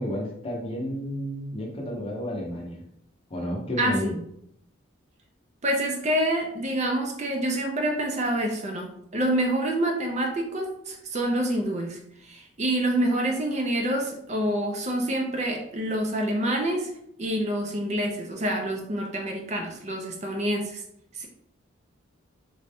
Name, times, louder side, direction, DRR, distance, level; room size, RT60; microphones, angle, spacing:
voice 1, 0.0-2.8 3.3-4.1, equal, 30° left, -1 dB, 0.8 m, -31 dB
voice 2, 3.8-4.2 5.6-16.9 17.2-20.8 21.1-21.3, right 1 dB, 35° right, 2 dB, 0.4 m, -27 dB
3.8 x 2.2 x 3.4 m, 0.74 s
head